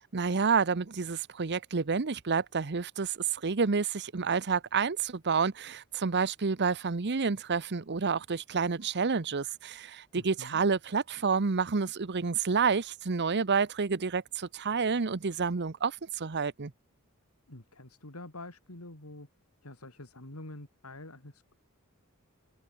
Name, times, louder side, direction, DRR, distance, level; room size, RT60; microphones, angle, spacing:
voice 1, 0.1-16.7, right 5 dB, 50° right, 0.8 m, -29 dB
voice 2, 10.1-10.6 17.5-19.3 19.6-21.5, left 2 dB, 80° left, 4.2 m, -46 dB
head